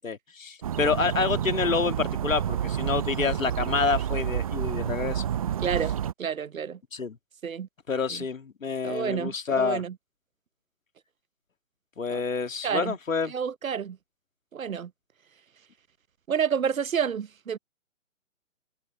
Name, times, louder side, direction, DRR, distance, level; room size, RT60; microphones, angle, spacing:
voice 1, 0.0-5.3 6.9-7.2 7.9-9.8 12.0-13.3, left 5 dB, 75° left, 2.0 m, -28 dB
sound 1, 0.6-6.1, right 10 dB, 25° right, 0.7 m, -29 dB
voice 2, 5.6-6.8 7.4-7.7 8.1-8.2 8.8-9.9 12.1-12.2 12.6-13.0 13.3-14.0 14.5-14.9 16.3-17.6, right 7 dB, 85° right, 0.7 m, -29 dB
figure-of-eight pair, 140°, 40 cm